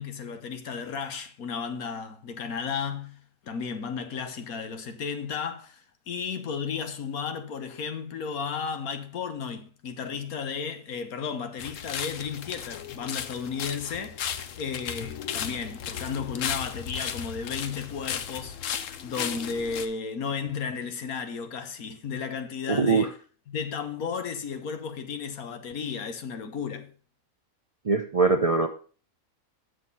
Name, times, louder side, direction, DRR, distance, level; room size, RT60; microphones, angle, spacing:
voice 1, 0.0-5.8 6.1-14.2 14.6-18.6 19.0-23.1 23.5-26.9, left 6 dB, 85° left, 1.5 m, -34 dB
sound 1, 11.6-19.9, left 9 dB, 65° left, 1.0 m, -35 dB
voice 2, 22.7-23.1 27.8-28.7, right 4 dB, 45° right, 0.4 m, -22 dB
8.0 x 6.0 x 5.3 m
omnidirectional pair, 1.5 m